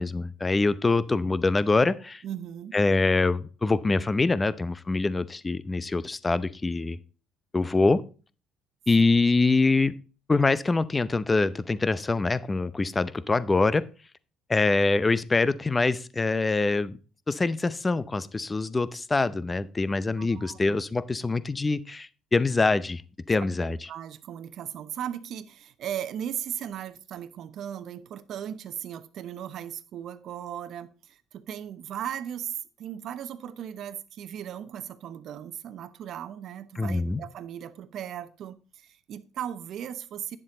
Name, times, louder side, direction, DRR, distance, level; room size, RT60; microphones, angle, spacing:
voice 1, 0.0-2.2 2.7-7.0 7.5-8.0 8.9-9.9 10.3-13.8 14.5-17.0 17.3-23.0 23.3-23.8 36.8-37.2, left 3 dB, 25° left, 17 dB, 0.7 m, -24 dB
voice 2, 2.2-2.8 20.2-20.8 23.6-38.6 38.8-40.4, right 10 dB, 65° right, 13 dB, 0.9 m, -37 dB
10.0 x 7.3 x 3.9 m, 0.36 s
supercardioid pair, 75°, 0 cm